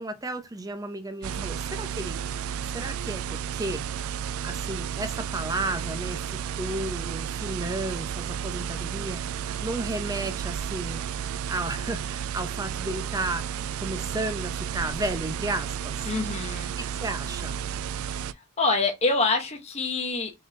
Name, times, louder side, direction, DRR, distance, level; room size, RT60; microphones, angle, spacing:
voice 1, 0.0-2.2 2.6-3.8 4.4-11.0 11.5-16.0 16.8-17.6, right 2 dB, 15° right, 0.5 m, -33 dB
sound 1, 1.2-18.3, right 8 dB, 80° right, 0.3 m, -32 dB
voice 2, 16.1-16.7 18.2-20.3, left 3 dB, 30° left, 0.8 m, -26 dB
3.8 x 3.8 x 3.2 m
head